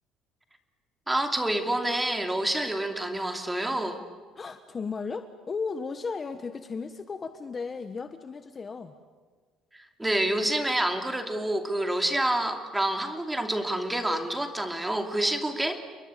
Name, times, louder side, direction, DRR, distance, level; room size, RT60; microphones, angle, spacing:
voice 1, 1.1-4.0 9.7-15.8, right 1 dB, 10° right, 5 dB, 2.8 m, -28 dB
voice 2, 4.4-8.9, left 5 dB, 25° left, 9 dB, 1.3 m, -35 dB
30.0 x 22.0 x 8.4 m, 1.5 s
cardioid pair, 130°, 0 cm